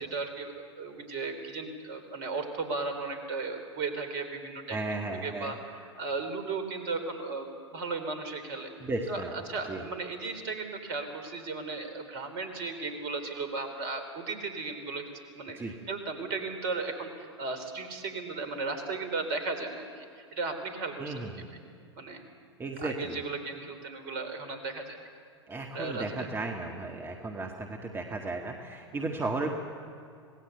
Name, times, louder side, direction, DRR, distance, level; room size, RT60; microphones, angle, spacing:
voice 1, 0.0-4.8 5.2-8.7 9.1-15.1 15.3-21.6 22.0-22.2 22.8-25.0 25.7-26.1, right 3 dB, 50° right, 8 dB, 4.0 m, -36 dB
voice 2, 4.7-5.5 8.8-9.4 9.7-9.8 15.6-15.7 21.0-21.5 22.6-23.2 25.5-29.5, right 2 dB, 15° right, 3 dB, 1.9 m, -35 dB
26.5 x 19.0 x 8.2 m, 2.3 s
figure-of-eight pair, 95°, 15 cm